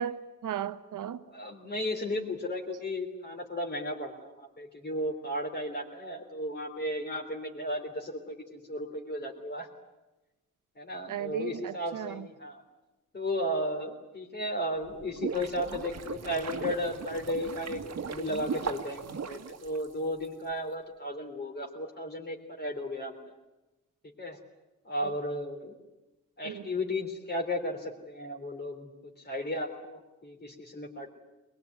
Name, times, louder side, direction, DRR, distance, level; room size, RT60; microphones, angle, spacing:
voice 1, 0.0-1.2 11.1-12.3 25.0-25.1 26.4-26.6, right 9 dB, 80° right, 1.3 m, -35 dB
voice 2, 1.3-9.7 10.8-12.6 13.1-23.2 24.2-24.4 24.8-25.8 26.4-31.1, left 1 dB, 30° left, 3.4 m, -34 dB
sound 1, 14.8-20.3, right 6 dB, 55° right, 1.6 m, -37 dB
22.5 x 22.0 x 9.4 m
wide cardioid pair, 150°, 31 cm